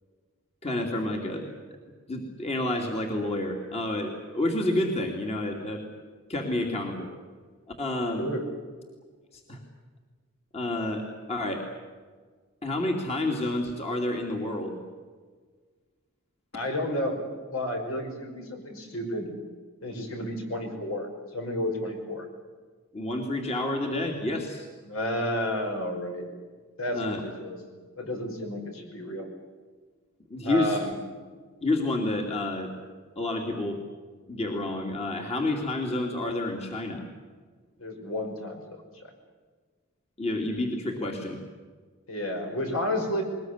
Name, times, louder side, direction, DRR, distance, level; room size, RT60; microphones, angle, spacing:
voice 1, 0.6-1.5 2.1-5.8 6.3-7.1 7.8-8.2 9.3-9.6 10.5-11.6 12.6-14.8 22.9-24.7 26.9-27.2 30.3-30.8 31.6-32.7 33.2-33.8 34.3-37.0 40.2-41.4, left 1 dB, 30° left, 2 dB, 2.6 m, -29 dB
voice 2, 8.2-8.5 16.5-17.2 17.5-19.3 19.8-22.3 24.9-26.3 26.8-27.6 28.0-29.3 30.4-31.0 37.8-39.1 42.1-43.2, left 1 dB, 70° left, 4 dB, 5.5 m, -31 dB
22.0 x 20.5 x 9.5 m, 1.5 s
head